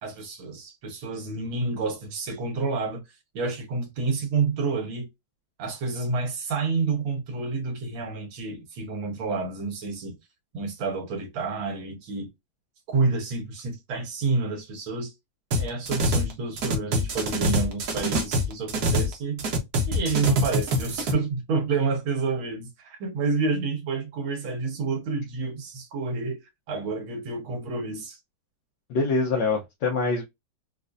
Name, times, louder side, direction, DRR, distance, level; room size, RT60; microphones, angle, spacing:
voice 1, 0.0-3.0 3.3-5.1 5.6-10.2 10.5-12.3 12.9-15.1 15.6-19.5 19.9-26.4 26.7-28.2, right 4 dB, 85° right, 1.9 m, -29 dB
sound 1, 15.5-16.3 16.6-19.1 19.4-21.1, equal, 60° right, 1.2 m, -25 dB
voice 2, 28.9-30.2, left 4 dB, 70° left, 1.4 m, -24 dB
4.3 x 2.5 x 2.4 m
omnidirectional pair, 2.2 m